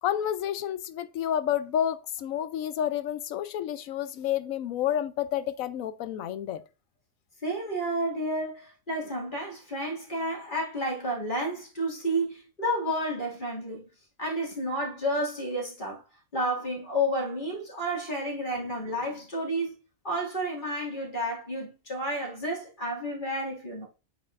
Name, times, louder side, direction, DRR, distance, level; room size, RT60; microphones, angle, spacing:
voice 1, 0.0-6.6, left 10 dB, 90° left, 1.0 m, -30 dB
voice 2, 7.4-13.9 14.2-16.0 16.3-19.8 20.0-23.9, equal, 35° left, 2.5 m, -31 dB
8.5 x 4.7 x 2.5 m
omnidirectional pair, 1.4 m